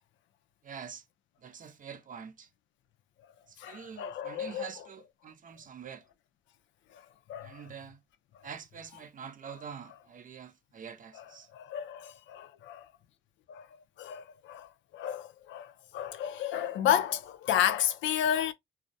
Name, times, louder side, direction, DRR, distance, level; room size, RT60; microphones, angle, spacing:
voice 1, 0.6-1.0 1.4-2.5 3.5-6.0 7.4-8.0 8.4-11.5, right 7 dB, 40° right, 0.6 m, -45 dB
voice 2, 3.6-4.6 6.9-7.0 7.3-7.6 11.5-12.9 13.5-18.5, left 10 dB, 75° left, 0.4 m, -32 dB
2.3 x 2.1 x 2.5 m
cardioid pair, 90°, 20 cm